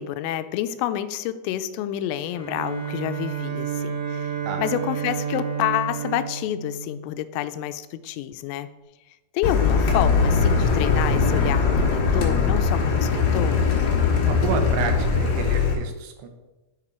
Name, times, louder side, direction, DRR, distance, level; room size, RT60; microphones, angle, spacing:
voice 1, 0.0-4.3 4.6-8.7 9.3-13.6, left 12 dB, 90° left, 11 dB, 3.1 m, -28 dB
Bowed string instrument, 2.2-7.5, right 7 dB, 55° right, 3.7 m, -31 dB
Car, 9.4-15.7, left 5 dB, 60° left, 2.4 m, -21 dB
voice 2, 14.3-16.3, right 6 dB, 75° right, 6 dB, 3.2 m, -30 dB
10.0 x 8.9 x 4.4 m, 1.1 s
omnidirectional pair, 5.7 m